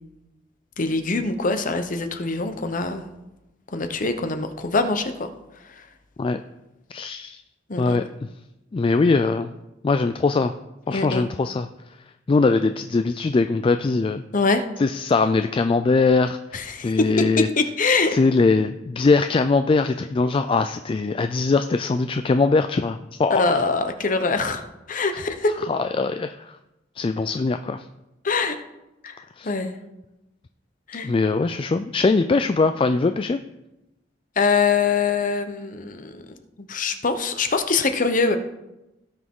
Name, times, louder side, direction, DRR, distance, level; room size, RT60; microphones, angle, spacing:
voice 1, 0.8-3.0 3.7-5.3 5.6-5.9 7.7-8.0 10.9-11.2 14.3-14.7 16.5-18.2 23.3-25.6 28.2-28.6 29.0-29.8 30.9-31.1 34.4-36.2 36.6-38.4, left 4 dB, 45° left, 8 dB, 0.9 m, -23 dB
voice 2, 6.9-7.4 7.8-8.1 8.7-9.5 9.8-10.5 10.9-11.7 12.3-14.2 14.8-17.5 18.1-23.6 25.7-26.6 27.0-27.9 29.4-29.5 31.0-33.4, left 3 dB, 30° left, 9 dB, 0.3 m, -21 dB
17.0 x 6.2 x 3.7 m, 0.96 s
head